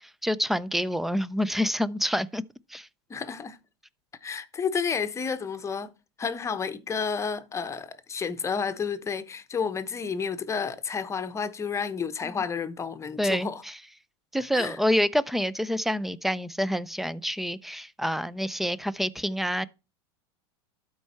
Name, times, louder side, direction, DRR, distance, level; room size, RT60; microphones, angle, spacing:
voice 1, 0.2-2.4 2.7-2.9 12.2-12.3 13.2-13.8 14.3-19.7, equal, ahead, 0.5 m, -27 dB
voice 2, 3.1-3.6 4.2-5.9 6.2-13.6 14.5-14.8, left 6 dB, 20° left, 1.0 m, -31 dB
12.5 x 4.7 x 4.3 m
hypercardioid pair, 110°, 15 cm